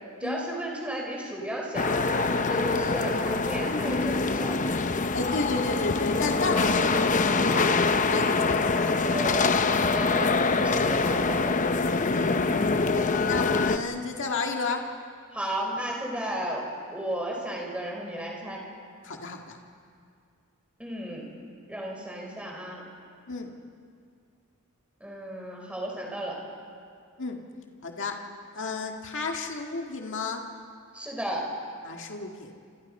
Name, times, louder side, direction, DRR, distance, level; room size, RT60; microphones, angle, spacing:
voice 1, 0.2-4.7 8.2-8.5 9.0-11.6 12.3-12.7 15.3-18.6 20.8-21.3 21.7-22.8 25.0-26.4 30.9-31.5, right 1 dB, 5° right, -1 dB, 5.1 m, -34 dB
sound 1, 1.7-13.8, left 4 dB, 35° left, 0.8 m, -24 dB
voice 2, 5.1-9.2 9.4-10.0 12.1-12.6 13.3-14.8 19.0-19.6 23.3-23.5 27.2-27.4 27.8-28.1 28.5-30.4 31.9-32.5, left 3 dB, 60° left, 2 dB, 1.9 m, -32 dB
28.5 x 28.0 x 5.5 m, 2.3 s
head